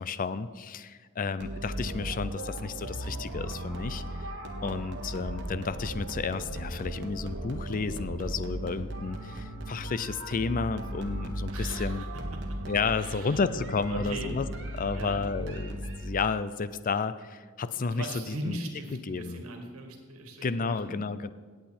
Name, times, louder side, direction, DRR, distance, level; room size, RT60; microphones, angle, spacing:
voice 1, 0.0-4.3 4.6-12.1 12.7-14.5 14.7-18.6 18.9-19.4 20.4-21.3, left 4 dB, 40° left, 14 dB, 0.5 m, -32 dB
sound 1, 1.4-16.3, right 1 dB, 55° right, 1.5 m, -37 dB
voice 2, 11.5-12.1 12.5-12.6 13.0-13.4 13.9-14.3 14.9-15.2 17.8-21.0, right 1 dB, 80° right, 3 dB, 1.9 m, -39 dB
17.5 x 8.0 x 4.3 m, 1.5 s
head